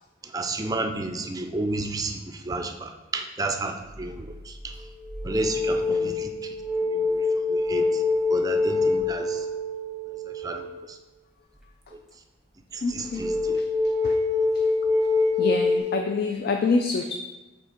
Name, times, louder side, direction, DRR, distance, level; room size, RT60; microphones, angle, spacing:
voice 1, 0.3-4.7 5.2-6.3 6.9-7.2 7.5-8.0 8.3-9.4 10.4-10.7 12.7-13.6, right 2 dB, 20° right, 5 dB, 0.4 m, -31 dB
sound 1, 4.0-4.3 4.8-10.7 13.2-15.8, left 3 dB, ahead, 0.8 m, -25 dB
voice 2, 12.8-13.2 13.6-13.7 14.0-14.2 15.4-17.1, left 4 dB, 55° left, 4 dB, 0.3 m, -26 dB
5.9 x 3.6 x 4.4 m, 1.2 s
head